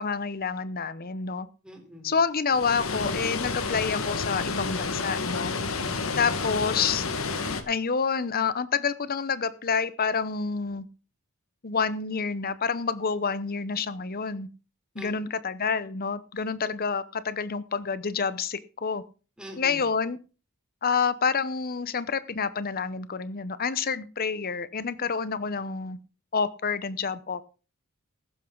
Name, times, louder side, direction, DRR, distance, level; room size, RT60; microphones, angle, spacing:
voice 1, 0.0-1.5 2.0-5.5 6.2-7.1 7.7-10.9 11.6-14.5 15.0-19.0 19.6-20.2 20.8-26.0 26.3-27.4, left 5 dB, 40° left, 15 dB, 0.8 m, -28 dB
voice 2, 1.6-2.1 5.8-6.2 15.0-15.1 19.4-19.8, equal, 5° right, 1 dB, 3.7 m, -43 dB
Water, 2.5-7.6, left 4 dB, 65° left, 1.6 m, -30 dB
15.0 x 11.5 x 3.9 m, 0.36 s
head